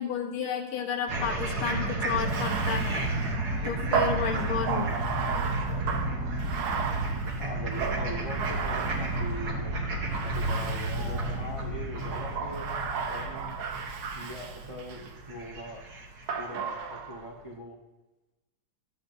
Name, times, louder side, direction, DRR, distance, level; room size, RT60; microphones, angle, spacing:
voice 1, 0.0-3.1 3.6-4.9, left 7 dB, 80° left, 3 dB, 1.8 m, -32 dB
sound 1, 1.1-16.4, right 2 dB, 55° right, 1.6 m, -32 dB
Bathtub (filling or washing), 2.2-9.6 10.1-11.4 12.0-15.1 16.3-17.3, right 6 dB, 80° right, 1.7 m, -34 dB
voice 2, 7.4-9.8 10.2-12.7 13.1-13.6 14.1-15.8 16.4-17.8, equal, 20° right, -3 dB, 0.9 m, -41 dB
13.0 x 7.6 x 2.6 m, 1.1 s
omnidirectional pair, 2.3 m